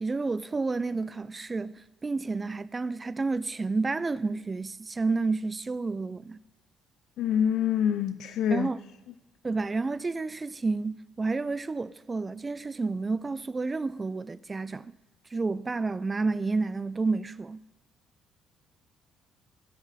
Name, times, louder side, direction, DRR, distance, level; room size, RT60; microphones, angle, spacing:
voice 1, 0.0-6.4 8.5-8.8 9.4-14.9 15.3-17.6, right 3 dB, 25° right, 0.3 m, -30 dB
voice 2, 7.2-8.7, left 9 dB, 75° left, 0.4 m, -26 dB
17.5 x 6.0 x 4.1 m
cardioid pair, 105°, 0 cm